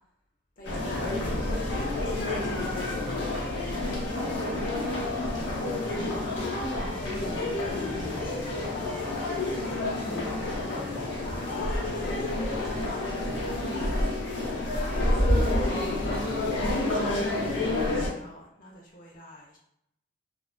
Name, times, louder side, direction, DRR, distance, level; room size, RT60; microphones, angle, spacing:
sound 1, 0.6-18.1, left 1 dB, 85° left, 0.8 m, -29 dB
voice 1, 0.6-1.3 2.0-3.0 9.2-14.2 15.2-16.2 16.5-19.6, left 1 dB, 45° left, -2 dB, 0.6 m, -46 dB
voice 2, 4.1-4.7 5.6-8.2, right 1 dB, 60° right, -2 dB, 0.7 m, -39 dB
2.4 x 2.3 x 2.3 m, 0.77 s
head